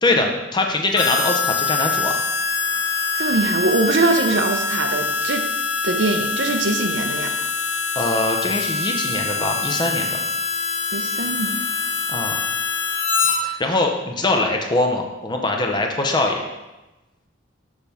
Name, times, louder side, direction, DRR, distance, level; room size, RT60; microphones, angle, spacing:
voice 1, 0.0-2.3 8.0-10.2 12.1-12.4 13.4-16.4, left 2 dB, 20° left, 3 dB, 0.6 m, -22 dB
Harmonica, 0.9-13.4, left 4 dB, 70° left, 0.7 m, -24 dB
voice 2, 3.1-5.4 5.8-7.3 10.9-11.6, right 3 dB, 65° right, 6 dB, 0.6 m, -22 dB
6.4 x 5.6 x 3.5 m, 1.1 s
head